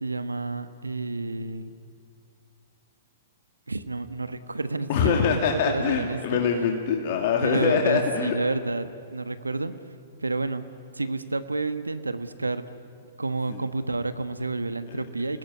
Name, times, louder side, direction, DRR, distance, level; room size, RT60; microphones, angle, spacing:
voice 1, 0.0-1.7 3.7-6.4 7.4-9.7 10.2-10.6 10.9-12.8 13.2-15.4, right 3 dB, 90° right, 12 dB, 1.3 m, -30 dB
voice 2, 4.9-8.3 13.5-13.6 14.9-15.0, left 6 dB, 50° left, 2 dB, 2.4 m, -24 dB
29.5 x 19.0 x 9.6 m, 2.4 s
figure-of-eight pair, 115°, 0 cm